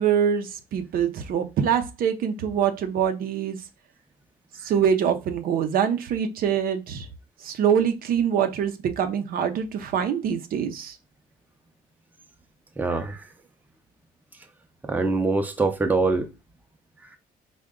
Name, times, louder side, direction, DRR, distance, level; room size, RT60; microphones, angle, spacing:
voice 1, 0.0-3.6 4.6-7.1 7.4-10.9, right 8 dB, 65° right, 0.5 m, -24 dB
voice 2, 12.8-13.2 14.8-16.3, right 3 dB, 10° right, 0.5 m, -24 dB
3.7 x 2.2 x 3.5 m
cardioid pair, 95°, 16 cm